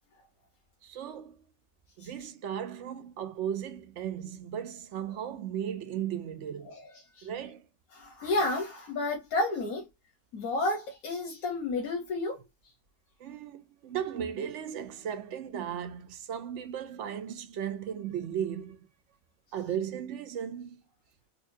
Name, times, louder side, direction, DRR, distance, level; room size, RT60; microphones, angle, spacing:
voice 1, 0.8-1.4 2.0-6.8 7.2-7.6 13.2-18.8 19.5-20.8, right 9 dB, 65° right, 0.8 m, -36 dB
voice 2, 7.9-9.9 10.3-12.4, left 2 dB, 85° left, 1.4 m, -31 dB
4.2 x 2.3 x 2.6 m
omnidirectional pair, 1.5 m